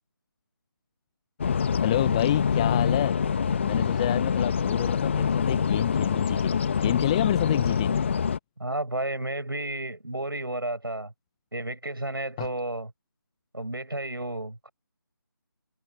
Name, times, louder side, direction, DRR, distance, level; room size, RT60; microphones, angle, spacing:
sound 1, 1.4-8.4, left 6 dB, 35° left, 1.7 m, -25 dB
voice 1, 1.8-3.1 3.6-8.1 12.4-12.5, left 14 dB, 15° left, 1.6 m, -28 dB
voice 2, 8.6-11.1 11.5-12.9 13.5-14.7, right 1 dB, 80° right, 7.4 m, -32 dB
figure-of-eight pair, 155°, 12 cm